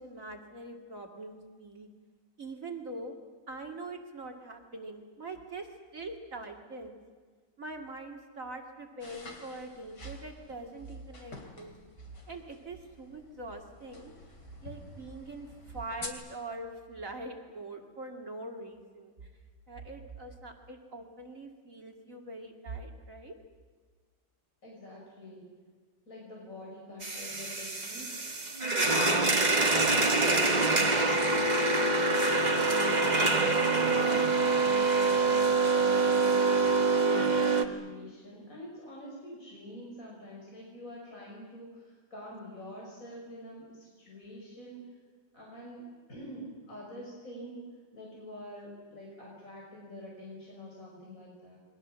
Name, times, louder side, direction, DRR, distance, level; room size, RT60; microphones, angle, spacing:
voice 1, 0.0-1.9 2.4-3.1 3.5-7.0 7.6-11.7 12.3-14.1 14.6-19.3 19.7-23.4 28.6-28.9, right 2 dB, 50° right, 2 dB, 2.7 m, -43 dB
sound 1, 9.0-16.1, left 2 dB, 75° left, 3.9 m, -49 dB
voice 2, 24.6-25.5 26.1-28.2 28.6-32.0 32.5-33.4 33.7-44.8 45.3-45.8 46.1-47.6 47.9-51.6, left 1 dB, 50° left, -3 dB, 6.6 m, -46 dB
sound 2, 27.0-37.6, right 3 dB, 25° right, 1.9 m, -25 dB
29.0 x 23.0 x 7.5 m, 1.5 s
omnidirectional pair, 1.8 m